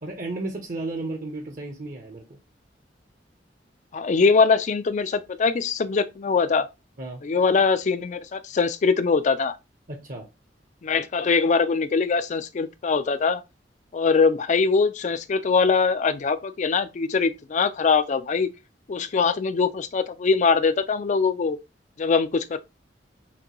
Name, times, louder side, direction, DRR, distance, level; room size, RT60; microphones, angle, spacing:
voice 1, 0.0-2.2 7.0-7.2 9.9-10.3, right 2 dB, 50° right, 0.8 m, -33 dB
voice 2, 3.9-6.7 7.2-9.5 10.8-13.4 13.9-18.5 18.9-21.6 22.0-22.6, left 5 dB, 40° left, 0.4 m, -22 dB
5.9 x 2.2 x 3.0 m
head